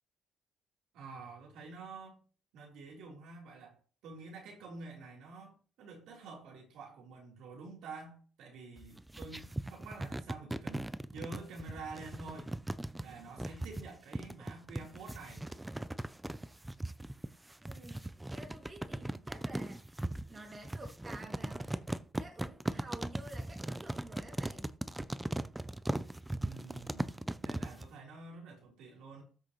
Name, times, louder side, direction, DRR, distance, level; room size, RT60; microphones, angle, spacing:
voice 1, 0.9-2.2 2.5-10.8 11.1-12.5 13.0-15.4 26.4-29.2, right 4 dB, 85° right, 3.9 m, -48 dB
sound 1, 8.8-27.9, right 1 dB, 10° right, 0.6 m, -39 dB
voice 2, 17.6-19.8 20.3-21.9 22.2-24.7, right 2 dB, 30° right, 2.5 m, -51 dB
13.0 x 6.5 x 3.2 m
cardioid pair, 90°, 0 cm